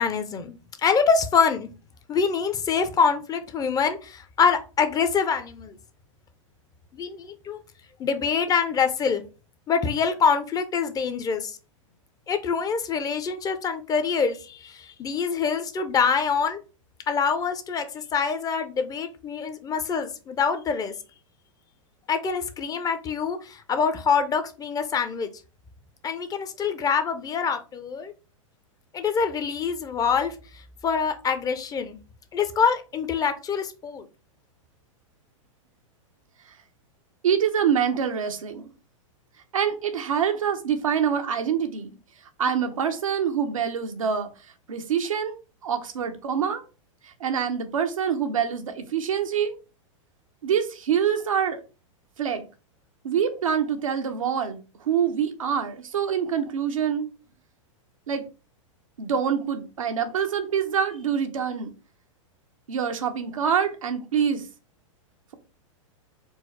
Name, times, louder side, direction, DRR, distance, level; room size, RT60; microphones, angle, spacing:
voice 1, 0.0-1.7 2.1-5.8 6.9-7.6 8.0-9.2 9.7-11.6 12.3-16.6 17.1-20.9 22.1-25.3 26.0-28.1 28.9-30.3 30.8-32.0 32.3-34.0, left 6 dB, 20° left, 0.6 m, -25 dB
voice 2, 37.2-38.7 39.5-42.0 42.4-44.3 44.7-45.4 45.6-46.6 47.2-49.6 50.4-51.6 52.2-52.5 53.0-57.1 58.1-58.2 59.0-61.7 62.7-64.4, right 7 dB, 90° right, 0.9 m, -25 dB
4.5 x 2.0 x 4.5 m
hypercardioid pair, 120°, 17 cm